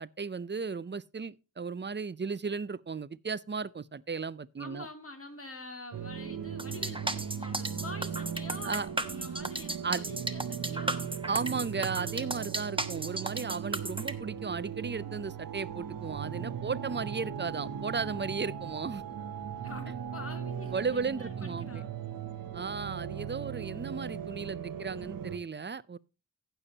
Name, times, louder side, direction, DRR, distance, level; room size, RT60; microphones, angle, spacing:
voice 1, 0.0-4.9 8.6-8.9 9.8-10.0 11.3-19.0 20.7-21.8 22.5-26.0, right 5 dB, 35° right, 0.6 m, -35 dB
voice 2, 4.6-11.1 19.6-21.9, left 2 dB, 40° left, 2.7 m, -46 dB
sound 1, 5.9-25.4, right 8 dB, 90° right, 0.8 m, -38 dB
sound 2, 6.6-14.1, right 2 dB, 15° right, 1.1 m, -35 dB
15.5 x 7.0 x 2.8 m
cardioid pair, 55°, 33 cm